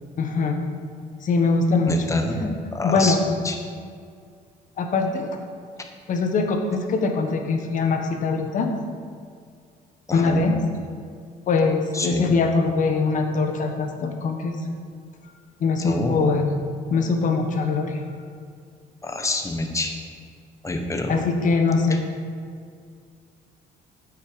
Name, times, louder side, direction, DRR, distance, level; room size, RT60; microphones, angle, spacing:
voice 1, 0.2-0.6 1.2-2.0 2.8-3.2 4.8-5.3 6.1-8.7 10.1-10.6 11.5-14.6 15.6-16.4 16.9-18.0 21.1-22.0, left 4 dB, 50° left, 4 dB, 1.1 m, -22 dB
voice 2, 1.9-3.6 10.1-10.4 11.9-12.3 15.8-16.3 19.0-19.9 20.6-21.3, left 2 dB, 20° left, 4 dB, 1.0 m, -27 dB
8.3 x 6.0 x 5.1 m, 2.2 s
cardioid pair, 110°, 17 cm